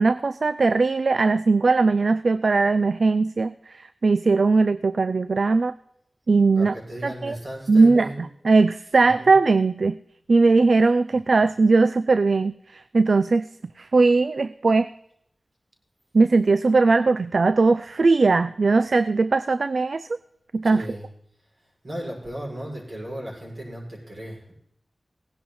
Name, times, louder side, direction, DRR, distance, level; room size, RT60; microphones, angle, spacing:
voice 1, 0.0-5.7 6.3-6.7 7.0-7.4 7.7-8.1 8.4-10.0 10.3-13.5 13.8-14.9 16.1-20.2 20.5-20.8, right 3 dB, 70° right, 14 dB, 0.4 m, -19 dB
voice 2, 6.3-8.2 9.0-9.3 11.1-11.5 20.6-21.1 21.8-24.5, right 1 dB, 55° right, -3 dB, 6.4 m, -36 dB
17.5 x 10.5 x 4.2 m, 0.71 s
wide cardioid pair, 55°, 0 cm